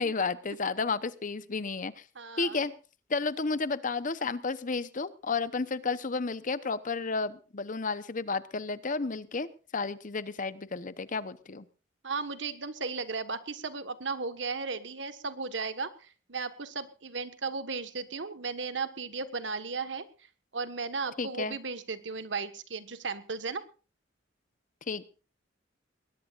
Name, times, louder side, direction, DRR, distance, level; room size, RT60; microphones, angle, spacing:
voice 1, 0.0-2.0 2.4-2.7 3.1-11.7 21.2-21.6 24.9-25.1, left 4 dB, 45° left, 14 dB, 0.9 m, -32 dB
voice 2, 2.1-2.7 12.0-20.0 20.5-23.6, right 4 dB, 75° right, 11 dB, 1.5 m, -35 dB
21.0 x 19.5 x 2.5 m, 0.34 s
head